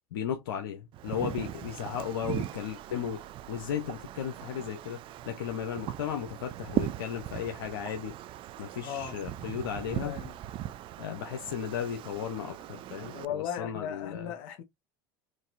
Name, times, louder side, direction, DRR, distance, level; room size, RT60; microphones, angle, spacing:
voice 1, 0.1-3.2 3.5-8.1 8.6-10.2 11.0-14.3, left 8 dB, 90° left, 0.7 m, -35 dB
Wind, 0.9-13.3, right 13 dB, 45° right, 0.4 m, -39 dB
sound 1, 1.8-2.2 3.9-4.2 5.9-6.1 7.8-8.2, right 8 dB, 70° right, 1.3 m, -47 dB
voice 2, 8.8-9.1 9.9-10.4 13.1-14.6, left 9 dB, 70° left, 1.1 m, -37 dB
4.0 x 2.6 x 2.5 m
hypercardioid pair, 90°, 12 cm